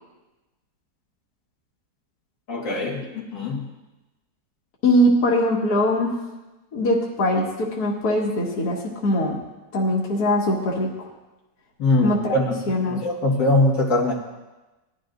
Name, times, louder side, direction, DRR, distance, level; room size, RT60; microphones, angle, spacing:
voice 1, 2.5-3.0 3.3-3.7 11.8-14.1, left 2 dB, 90° left, -3 dB, 2.5 m, -22 dB
voice 2, 4.8-6.2 6.7-9.4 9.7-11.1 12.0-12.4 12.7-13.0, left 1 dB, 60° left, -3 dB, 2.2 m, -21 dB
18.5 x 12.0 x 2.6 m, 1.1 s
omnidirectional pair, 1.9 m